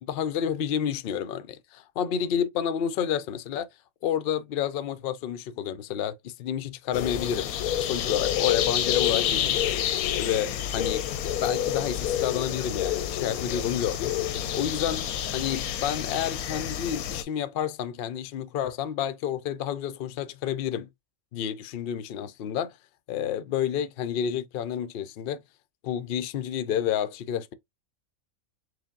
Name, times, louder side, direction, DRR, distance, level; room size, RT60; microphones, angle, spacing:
voice 1, 0.0-3.7 4.0-7.6 7.8-11.0 11.4-14.1 14.5-20.9 21.3-22.7 23.1-25.4 25.8-27.5, left 9 dB, 70° left, 0.5 m, -30 dB
sound 1, 6.9-17.2, left 10 dB, 90° left, 1.0 m, -28 dB
4.8 x 2.1 x 3.6 m
omnidirectional pair, 1.5 m